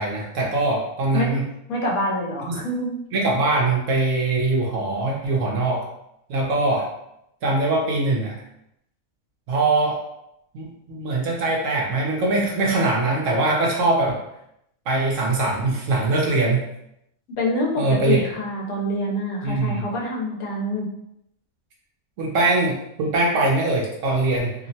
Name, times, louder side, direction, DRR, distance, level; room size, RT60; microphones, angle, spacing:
voice 1, 0.0-1.5 2.5-2.6 3.1-5.8 6.3-6.9 7.4-8.3 9.5-10.0 10.5-14.2 14.9-16.6 17.8-18.2 19.4-19.9 22.2-24.5, right 2 dB, 70° right, -2 dB, 0.9 m, -22 dB
voice 2, 1.7-3.0 17.3-20.9, left 1 dB, 80° left, -2 dB, 1.1 m, -26 dB
2.8 x 2.0 x 2.7 m, 0.80 s
omnidirectional pair, 1.5 m